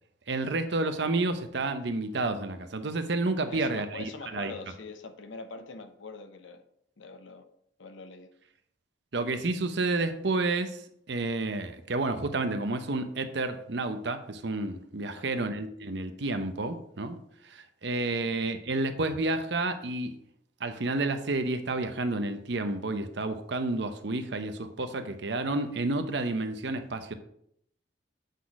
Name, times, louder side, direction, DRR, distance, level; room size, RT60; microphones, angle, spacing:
voice 1, 0.3-4.5 9.1-10.8 11.1-20.1 20.6-27.1, right 2 dB, 60° right, 8 dB, 0.7 m, -30 dB
voice 2, 3.5-6.6 7.0-7.5 7.8-8.3 15.1-15.5 18.2-18.4, left 3 dB, 80° left, 8 dB, 0.8 m, -44 dB
8.2 x 4.1 x 4.7 m, 0.71 s
head